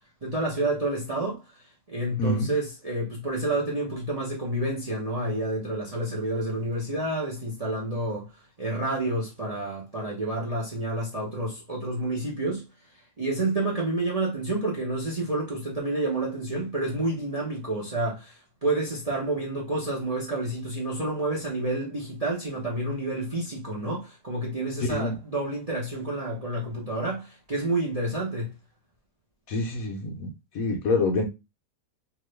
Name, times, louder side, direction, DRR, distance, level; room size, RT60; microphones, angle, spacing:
voice 1, 0.2-1.4 1.9-8.3 8.6-12.6 13.2-28.5, right 2 dB, 30° right, 0.7 m, -29 dB
voice 2, 2.2-2.5 24.8-25.2 29.5-30.3 30.5-31.2, left 2 dB, 65° left, 1.0 m, -26 dB
2.9 x 2.6 x 3.2 m
omnidirectional pair, 1.8 m